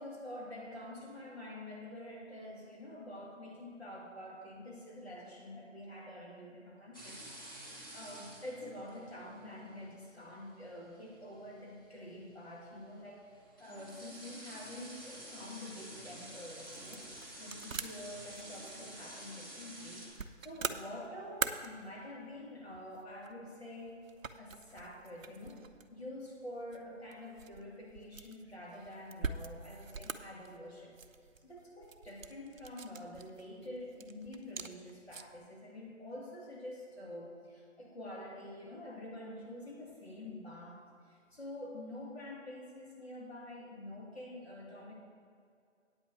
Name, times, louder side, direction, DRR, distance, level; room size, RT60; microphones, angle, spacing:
voice 1, 0.0-7.7 7.9-13.2 13.6-17.1 17.4-20.1 20.4-24.1 24.4-25.6 25.9-30.9 31.4-40.8 41.1-44.9, left 1 dB, 55° left, -3 dB, 2.6 m, -47 dB
sound 1, 6.9-20.1, right 1 dB, 15° left, 1.2 m, -50 dB
sound 2, 15.9-35.5, right 5 dB, 90° right, 0.7 m, -45 dB
9.1 x 5.6 x 7.6 m, 2.3 s
figure-of-eight pair, 175°, 39 cm